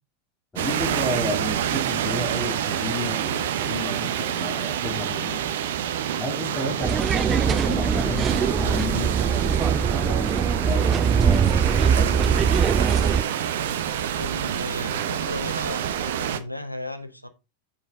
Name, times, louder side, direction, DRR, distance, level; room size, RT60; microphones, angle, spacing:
voice 1, 0.5-5.6 6.2-12.5, left 1 dB, 10° left, 2.3 m, -32 dB
sound 1, 0.6-16.4, right 9 dB, 55° right, 0.8 m, -27 dB
sound 2, 6.8-13.2, right 7 dB, 20° right, 0.3 m, -22 dB
voice 2, 14.2-17.3, left 1 dB, 90° right, 0.8 m, -35 dB
7.0 x 6.5 x 3.5 m
figure-of-eight pair, 90°, 0 cm